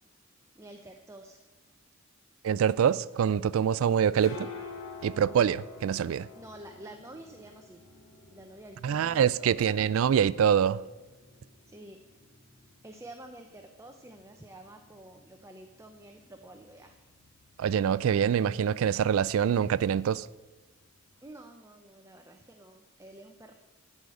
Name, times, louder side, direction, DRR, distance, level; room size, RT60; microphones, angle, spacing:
voice 1, 0.5-1.4 6.3-7.8 8.3-9.6 11.7-12.0 12.8-17.0 21.2-23.5, right 1 dB, 15° right, 0.6 m, -49 dB
voice 2, 2.4-4.5 5.0-6.3 8.8-10.8 17.6-20.3, right 8 dB, 75° right, 0.3 m, -25 dB
sound 1, 3.8-21.2, left 4 dB, 85° left, 1.4 m, -51 dB
11.5 x 5.0 x 8.2 m
head